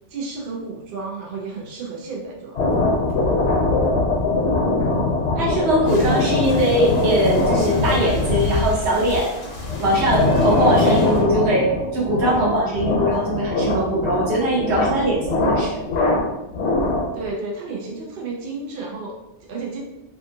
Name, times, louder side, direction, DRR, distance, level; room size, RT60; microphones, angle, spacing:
voice 1, 0.1-2.6 5.4-6.2 17.1-19.8, right 3 dB, 60° right, -2 dB, 0.7 m, -32 dB
sound 1, 2.6-17.3, left 2 dB, 85° left, 0.9 m, -22 dB
voice 2, 5.4-9.3 9.8-15.8, right 1 dB, 75° right, -4 dB, 1.1 m, -21 dB
sound 2, 5.8-11.2, left 1 dB, 55° left, 0.8 m, -38 dB
2.6 x 2.3 x 2.6 m, 0.93 s
omnidirectional pair, 1.1 m